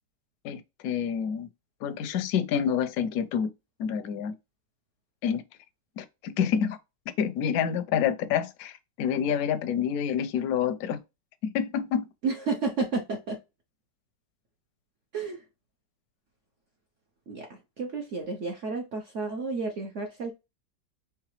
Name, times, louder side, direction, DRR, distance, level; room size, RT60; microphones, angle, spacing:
voice 1, 0.4-1.5 1.8-3.5 3.8-4.3 5.2-5.4 6.0-6.8 7.2-11.0 11.4-12.1, left 8 dB, 70° left, 1.0 m, -28 dB
voice 2, 12.2-13.4 15.1-15.4 17.3-20.3, right 4 dB, 55° right, 0.9 m, -31 dB
4.8 x 3.3 x 3.1 m
omnidirectional pair, 2.0 m